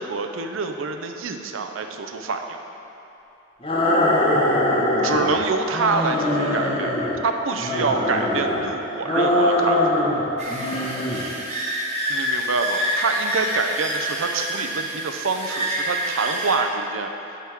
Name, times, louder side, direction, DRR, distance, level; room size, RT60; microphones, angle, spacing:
voice 1, 0.0-2.6 5.0-6.9 7.2-10.0 12.1-17.1, right 4 dB, 80° right, 5 dB, 0.6 m, -26 dB
sound 1, 3.6-5.4 5.7-7.2 7.6-8.6 9.0-10.2 10.5-11.2, left 1 dB, 30° left, 1.1 m, -22 dB
sound 2, 10.4-16.5, equal, 35° right, 1.5 m, -27 dB
10.0 x 3.6 x 6.0 m, 2.9 s
head